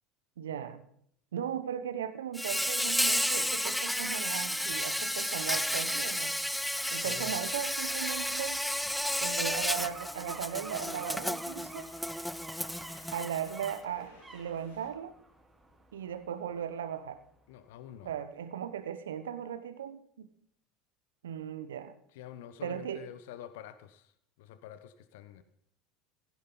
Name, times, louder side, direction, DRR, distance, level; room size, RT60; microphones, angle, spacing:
voice 1, 0.4-0.8 1.3-6.4 6.9-8.6 9.2-11.9 13.1-15.1 15.9-17.2 18.0-20.3 21.2-21.9 22.6-23.0, right 9 dB, 75° right, 12 dB, 1.1 m, -37 dB
Insect, 2.3-13.8, left 1 dB, 5° left, 0.5 m, -32 dB
sound 1, 5.1-17.9 18.3-18.4, right 2 dB, 15° right, 3.6 m, -53 dB
voice 2, 7.0-7.4 17.5-18.1 22.1-25.4, left 10 dB, 65° left, 12 dB, 1.1 m, -47 dB
sound 2, 8.4-14.9, left 1 dB, 80° left, 6.9 m, -58 dB
16.5 x 15.0 x 4.0 m, 0.67 s
figure-of-eight pair, 70°, 0 cm